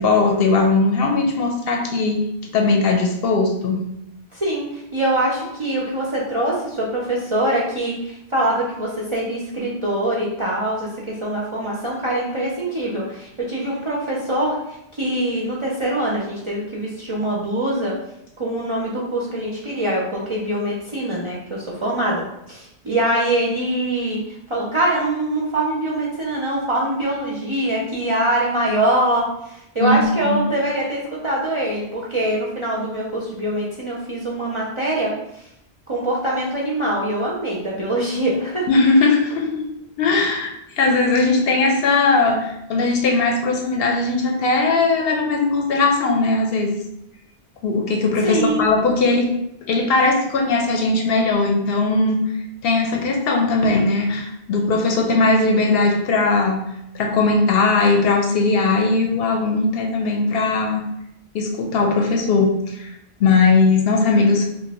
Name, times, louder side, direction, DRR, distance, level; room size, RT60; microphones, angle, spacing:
voice 1, 0.0-2.2 2.5-3.8 29.8-30.4 38.7-39.7 40.0-46.8 47.6-49.3 49.7-52.3 52.6-56.6 56.9-60.8 61.3-62.9 63.2-64.5, left 3 dB, 70° left, 2 dB, 0.7 m, -19 dB
voice 2, 4.3-17.9 18.4-22.2 22.5-35.4 35.9-38.7 48.2-48.7, right 1 dB, 45° right, -5 dB, 0.4 m, -23 dB
2.5 x 2.1 x 4.0 m, 0.82 s
omnidirectional pair, 1.1 m